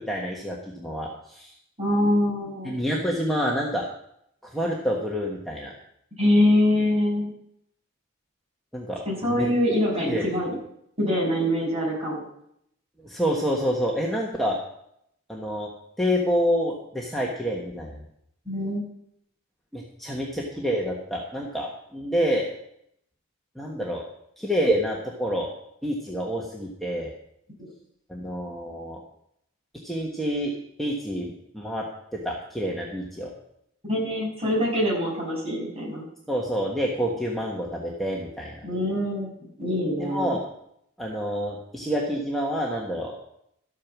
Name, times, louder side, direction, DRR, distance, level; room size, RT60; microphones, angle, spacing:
voice 1, 0.0-1.5 2.6-3.9 4.4-5.7 8.7-9.0 9.3-9.5 10.0-10.3 13.0-14.6 15.3-15.7 16.0-18.0 19.7-22.5 23.6-24.1 24.4-25.5 25.8-27.1 28.1-29.0 29.8-30.5 30.8-31.9 32.1-33.3 36.3-38.5 40.0-40.4 41.0-43.2, equal, ahead, -3 dB, 1.5 m, -28 dB
voice 2, 1.8-2.8 6.2-7.3 9.1-10.6 11.0-12.2 18.5-18.8 27.6-27.7 33.9-36.0 38.6-40.3, left 1 dB, 30° right, -4 dB, 6.9 m, -24 dB
13.5 x 8.7 x 6.1 m, 0.74 s
head